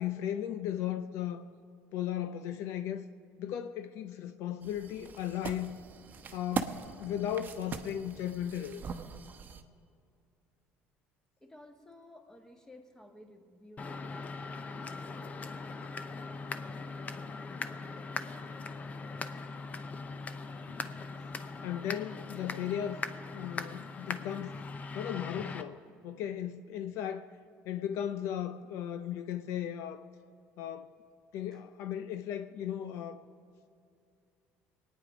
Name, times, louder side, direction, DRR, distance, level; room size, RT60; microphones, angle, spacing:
voice 1, 0.0-1.5 1.9-3.1 3.4-5.8 6.3-8.9 20.6-21.2 21.6-24.6 24.9-27.4 27.6-30.0 30.6-30.9 31.3-33.2, left 10 dB, 70° left, 0.6 m, -36 dB
sound 1, 4.6-9.6, right 5 dB, 35° right, 1.0 m, -41 dB
voice 2, 11.4-14.5 14.7-20.3 31.5-31.6, left 1 dB, 10° left, 1.7 m, -57 dB
sound 2, 13.8-25.6, left 4 dB, 30° left, 0.8 m, -40 dB
23.0 x 9.5 x 5.1 m
cardioid pair, 110°, 5 cm